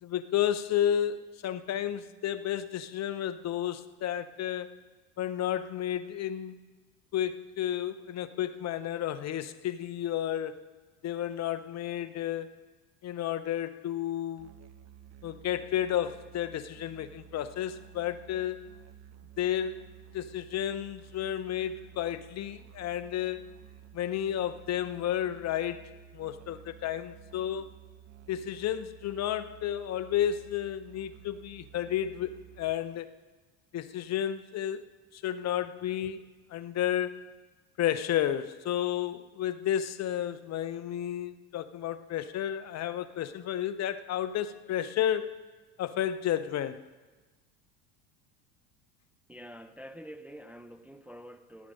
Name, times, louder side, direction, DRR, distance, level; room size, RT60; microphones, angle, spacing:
voice 1, 0.0-4.7 5.2-6.6 7.1-10.6 11.0-12.6 13.0-14.5 15.2-18.7 19.4-19.8 20.1-23.5 23.9-27.7 28.3-33.1 33.7-34.8 35.1-36.2 36.5-37.2 37.8-45.3 45.8-46.8, left 11 dB, 40° left, 14 dB, 0.8 m, -32 dB
Musical instrument, 14.4-32.8, right 11 dB, 40° right, 1.0 m, -53 dB
voice 2, 49.3-51.7, equal, 5° right, 9 dB, 0.5 m, -47 dB
15.5 x 10.0 x 5.3 m, 1.3 s
hypercardioid pair, 85°, 42 cm